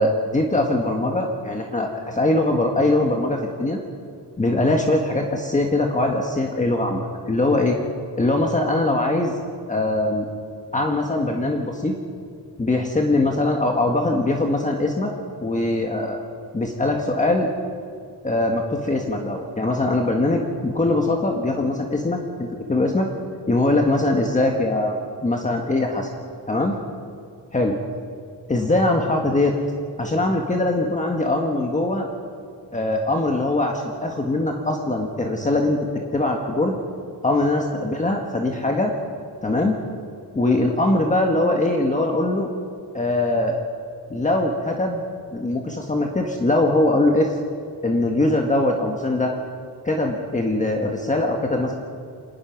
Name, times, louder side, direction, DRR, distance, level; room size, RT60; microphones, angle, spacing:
voice 1, 0.0-3.8 4.4-7.8 8.2-9.3 9.7-10.2 10.7-11.9 12.6-15.1 15.4-16.2 16.5-17.5 18.2-23.1 23.5-26.1 26.5-26.8 27.5-27.8 28.5-29.6 30.0-32.1 32.7-35.8 36.1-36.8 37.2-38.9 39.4-39.7 40.3-42.5 42.9-43.6 44.1-45.0 45.3-47.4 47.8-49.3 49.8-51.8, left 2 dB, 20° left, 1 dB, 1.5 m, -22 dB
26.5 x 19.5 x 6.0 m, 2.2 s
wide cardioid pair, 175°, 41 cm